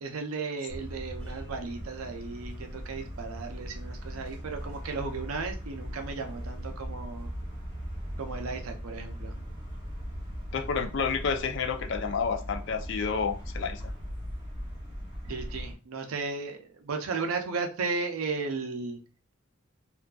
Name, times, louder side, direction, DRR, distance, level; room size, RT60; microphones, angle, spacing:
voice 1, 0.0-7.3 8.2-9.4 15.2-19.0, right 4 dB, 75° right, 5 dB, 0.5 m, -35 dB
sound 1, 0.7-15.7, equal, 20° right, 0.7 m, -39 dB
voice 2, 10.5-13.8, left 5 dB, 55° left, 4 dB, 0.4 m, -30 dB
2.5 x 2.4 x 2.2 m, 0.35 s
head